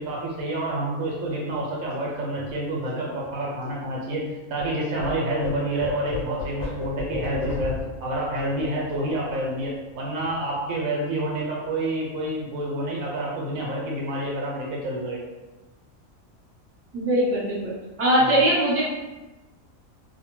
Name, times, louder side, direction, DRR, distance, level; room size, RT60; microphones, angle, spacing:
voice 1, 0.0-7.7 8.0-15.2 18.2-18.4, right 1 dB, 85° right, -3 dB, 1.1 m, -28 dB
sound 1, 1.3-4.7 4.9-9.9 10.2-10.5 10.7-11.3, left 4 dB, 60° left, 1.0 m, -36 dB
voice 2, 16.9-17.7 18.0-18.8, right 1 dB, 15° right, -9 dB, 0.7 m, -21 dB
2.5 x 2.2 x 3.0 m, 1.1 s
omnidirectional pair, 1.4 m